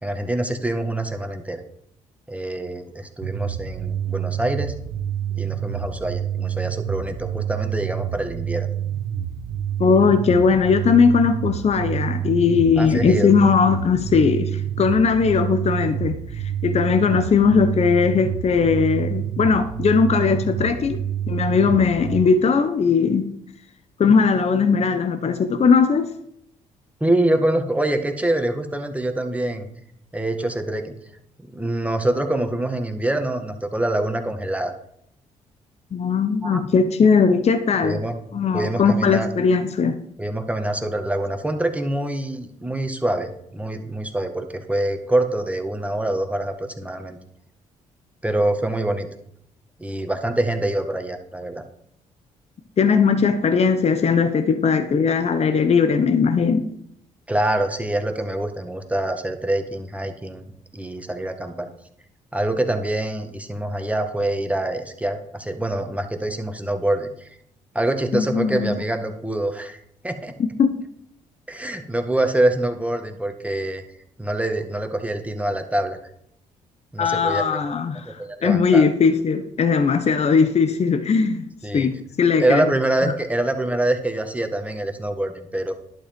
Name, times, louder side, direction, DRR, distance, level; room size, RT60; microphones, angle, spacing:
voice 1, 0.0-1.6 2.3-4.7 5.4-8.7 12.8-13.3 27.0-29.7 30.1-30.9 31.5-34.7 36.4-36.6 37.8-38.2 38.5-39.3 40.2-47.2 48.2-49.1 49.8-51.6 57.3-60.4 60.7-61.7 62.3-67.3 67.8-70.3 71.5-73.8 74.2-76.0 76.9-77.6 78.1-78.8 81.6-81.9 82.4-85.7, right 1 dB, 10° right, 1.8 m, -25 dB
sound 1, 3.2-22.2, right 10 dB, 80° right, 1.0 m, -28 dB
voice 2, 9.8-23.3 24.0-26.1 35.9-38.0 38.3-40.0 52.8-56.7 68.1-68.7 70.6-70.8 77.0-81.5 81.7-82.7 83.0-83.1, left 5 dB, 45° left, 1.0 m, -19 dB
11.5 x 7.2 x 5.3 m
supercardioid pair, 60°, 15 cm